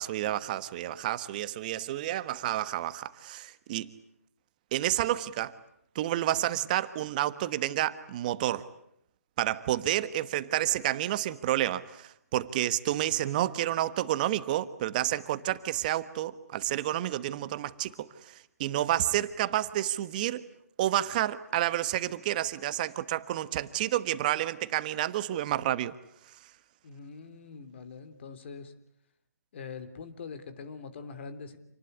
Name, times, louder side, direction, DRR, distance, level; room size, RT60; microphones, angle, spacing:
voice 1, 0.0-3.9 4.7-5.6 5.9-8.7 9.4-20.4 20.8-25.9, right 13 dB, 30° right, 13 dB, 1.3 m, -30 dB
voice 2, 26.8-28.7 29.5-31.6, left 5 dB, 45° left, 11 dB, 3.3 m, -43 dB
28.0 x 20.0 x 9.9 m, 0.73 s
figure-of-eight pair, 150°, 9 cm